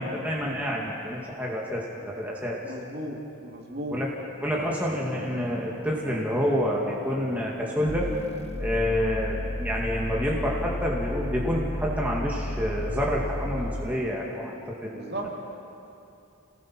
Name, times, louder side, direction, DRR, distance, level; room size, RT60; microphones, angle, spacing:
voice 1, 0.0-2.6 3.9-4.1 4.4-8.1 8.6-15.1, equal, 5° right, -3 dB, 2.0 m, -28 dB
voice 2, 2.6-4.0 14.9-15.3, right 1 dB, 45° right, -1 dB, 3.0 m, -36 dB
sound 1, 7.9-14.0, left 1 dB, 30° left, 0.9 m, -33 dB
28.5 x 19.5 x 6.0 m, 2.7 s
head